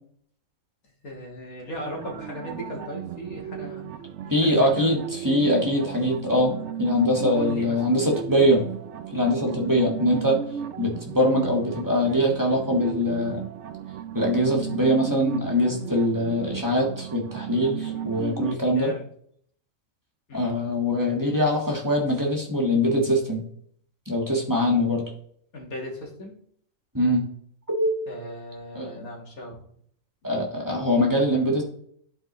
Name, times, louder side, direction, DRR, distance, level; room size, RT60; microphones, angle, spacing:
voice 1, 1.0-3.9 4.2-5.0 7.3-7.8 11.2-11.4 17.9-18.0 18.7-19.0 20.3-20.5 25.5-26.4 28.1-29.6, left 1 dB, 90° left, -1 dB, 2.1 m, -37 dB
sound 1, 1.8-18.6, right 9 dB, 65° right, 0.8 m, -35 dB
voice 2, 4.3-5.0 5.2-8.6 9.1-10.4 10.8-13.4 14.1-18.9 20.3-23.4 24.1-25.0 26.9-27.3 27.7-28.0 28.7-28.9 30.2-31.6, equal, 15° right, -1 dB, 1.4 m, -23 dB
11.0 x 4.4 x 3.1 m, 0.65 s
omnidirectional pair, 1.5 m